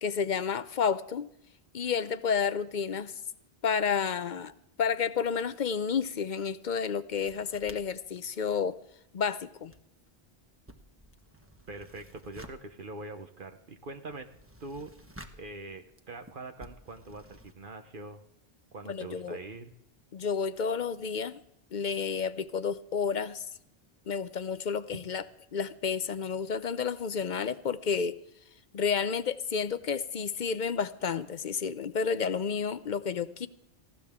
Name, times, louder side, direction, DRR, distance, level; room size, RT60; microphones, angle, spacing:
voice 1, 0.0-1.3 1.7-3.2 3.6-4.5 4.8-8.8 9.1-9.7 18.8-19.4 20.1-21.4 21.7-23.5 24.1-25.2 25.5-28.2 28.7-33.5, left 6 dB, 55° left, 14 dB, 0.7 m, -30 dB
sound 1, 7.1-9.3 9.6-17.6, equal, 15° right, 1.1 m, -53 dB
voice 2, 11.7-14.3 14.6-14.9 15.3-18.2 18.7-19.7, right 2 dB, 55° right, 6 dB, 1.1 m, -43 dB
19.0 x 15.5 x 3.6 m, 0.78 s
omnidirectional pair, 1.1 m